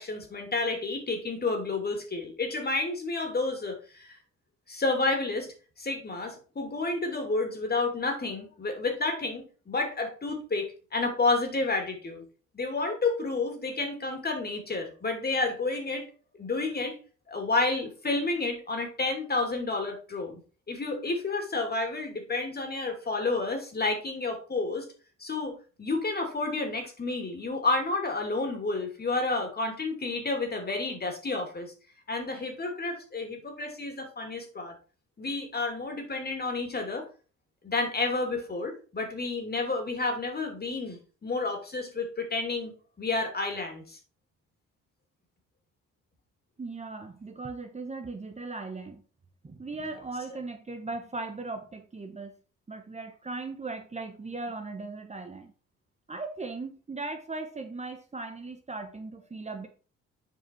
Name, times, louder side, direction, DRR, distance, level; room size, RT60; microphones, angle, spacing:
voice 1, 0.0-4.2 4.7-12.2 12.5-16.1 16.4-17.0 17.3-20.4 20.7-24.9 25.2-31.7 32.1-34.7 35.2-37.0 37.6-42.7 43.0-44.0, left 3 dB, 30° left, 2.8 m, -30 dB
voice 2, 46.6-49.0 49.4-52.3 52.7-55.5 56.1-59.7, right 3 dB, 20° right, 1.0 m, -38 dB
8.0 x 4.9 x 4.5 m
cardioid pair, 90°, 30 cm